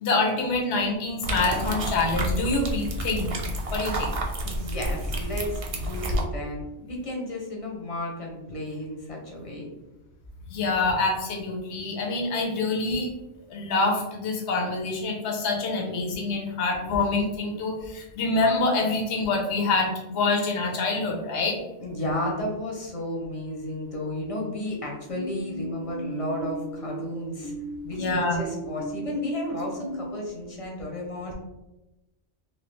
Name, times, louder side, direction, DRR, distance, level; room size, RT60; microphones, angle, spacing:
voice 1, 0.0-3.3 3.7-4.1 10.5-13.1 13.5-21.6 28.0-28.4, left 3 dB, 70° left, 1 dB, 1.0 m, -26 dB
sound 1, 1.2-6.2, right 1 dB, 60° right, 0.3 m, -29 dB
voice 2, 4.4-9.7 21.8-27.5 27.8-31.3, left 1 dB, 30° left, -1 dB, 0.8 m, -33 dB
sound 2, 25.1-30.2, right 1 dB, 85° left, 1.3 m, -36 dB
3.0 x 2.8 x 3.1 m, 0.98 s
omnidirectional pair, 1.2 m